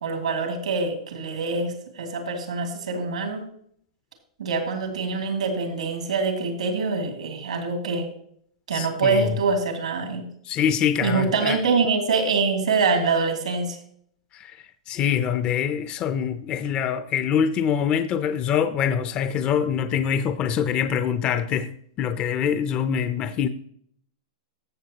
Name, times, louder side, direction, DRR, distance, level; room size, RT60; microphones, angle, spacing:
voice 1, 0.0-3.4 4.4-8.1 8.7-10.2 11.0-13.8, right 4 dB, 85° right, 2.7 m, -25 dB
voice 2, 8.7-9.4 10.4-11.6 14.3-21.7 22.0-23.5, left 8 dB, 30° left, 0.6 m, -24 dB
15.0 x 7.0 x 2.9 m
hypercardioid pair, 135°, 4 cm